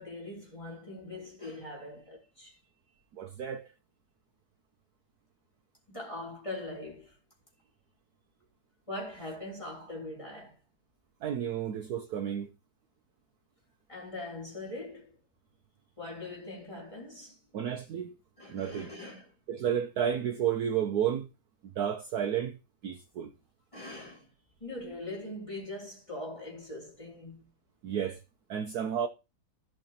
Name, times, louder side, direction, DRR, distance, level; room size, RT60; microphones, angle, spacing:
voice 1, 0.0-2.6 5.9-7.1 8.9-10.6 13.9-15.1 16.0-17.4 18.4-19.3 23.7-24.3 24.6-27.5, left 2 dB, 15° left, 3.2 m, -41 dB
voice 2, 3.2-3.7 11.2-12.5 17.5-18.1 18.5-18.9 19.5-21.3 21.8-22.6 22.8-23.3 27.8-28.2 28.5-29.1, right 9 dB, 65° right, 1.1 m, -31 dB
15.5 x 5.5 x 2.9 m
omnidirectional pair, 2.1 m